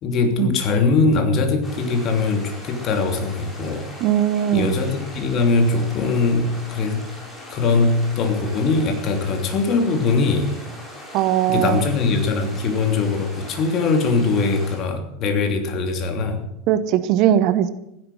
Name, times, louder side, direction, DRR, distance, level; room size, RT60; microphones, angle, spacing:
voice 1, 0.0-3.9 4.5-7.1 7.5-10.5 11.5-16.4, left 3 dB, 40° left, 6 dB, 3.0 m, -21 dB
sound 1, 1.6-14.8, left 1 dB, 15° left, 6.1 m, -40 dB
voice 2, 4.0-4.7 11.1-11.9 16.7-17.7, right 11 dB, 45° right, 13 dB, 1.1 m, -19 dB
15.5 x 11.0 x 7.7 m, 0.82 s
figure-of-eight pair, 85°, 0 cm